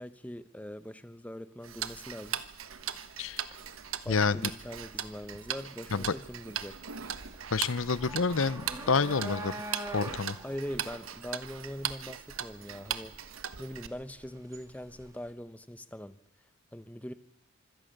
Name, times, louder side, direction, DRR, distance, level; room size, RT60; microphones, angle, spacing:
voice 1, 0.0-2.4 4.0-6.8 10.4-13.2 13.6-16.2 16.7-17.1, equal, 5° left, 12 dB, 1.0 m, -42 dB
Tick-tock, 1.6-13.9, right 9 dB, 75° right, 1.2 m, -39 dB
sound 1, 2.2-15.3, right 1 dB, 15° right, 2.6 m, -46 dB
voice 2, 7.5-10.4, left 4 dB, 70° left, 18 dB, 0.7 m, -29 dB
25.5 x 17.5 x 6.7 m, 0.87 s
head